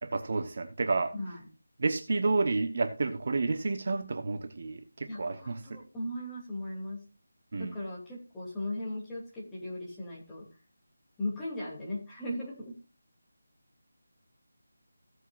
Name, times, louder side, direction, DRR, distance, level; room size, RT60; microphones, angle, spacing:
voice 1, 0.0-1.1 1.8-5.8 7.5-7.8, right 3 dB, 40° right, 8 dB, 1.0 m, -30 dB
voice 2, 5.1-7.0 7.6-10.5 11.2-12.8, left 1 dB, 5° left, -7 dB, 2.6 m, -37 dB
16.5 x 8.2 x 2.5 m, 0.30 s
figure-of-eight pair, 175°, 0 cm